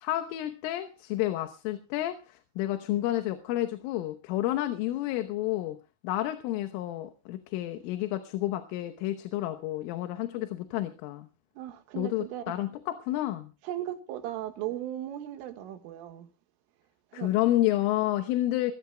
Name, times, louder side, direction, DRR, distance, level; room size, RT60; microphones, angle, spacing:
voice 1, 0.0-5.8 6.0-11.3 12.0-13.5 17.1-18.7, left 14 dB, 85° left, 3.6 m, -30 dB
voice 2, 11.6-12.6 13.6-16.3 17.1-17.3, right 12 dB, 90° right, 4.1 m, -37 dB
22.5 x 16.0 x 2.3 m
omnidirectional pair, 5.6 m